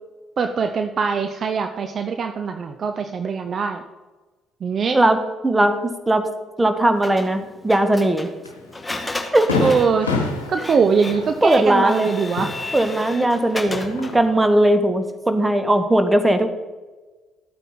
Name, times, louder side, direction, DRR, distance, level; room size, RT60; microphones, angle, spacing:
voice 1, 0.4-3.8 4.6-5.0 9.6-10.1 10.5-12.6, right 5 dB, 50° right, 8 dB, 0.7 m, -22 dB
voice 2, 5.4-5.7 6.1-6.2 6.6-8.3 9.3-9.5 11.4-12.1 12.7-16.5, right 1 dB, 15° right, 8 dB, 1.5 m, -18 dB
Printer, 7.0-14.3, left 2 dB, 15° left, 1.9 m, -34 dB
Fireworks, 8.4-8.6 9.0-9.1 9.5-13.3 13.6-14.4, left 3 dB, 90° left, 1.1 m, -28 dB
13.5 x 9.0 x 4.2 m, 1.2 s
figure-of-eight pair, 45°, 0 cm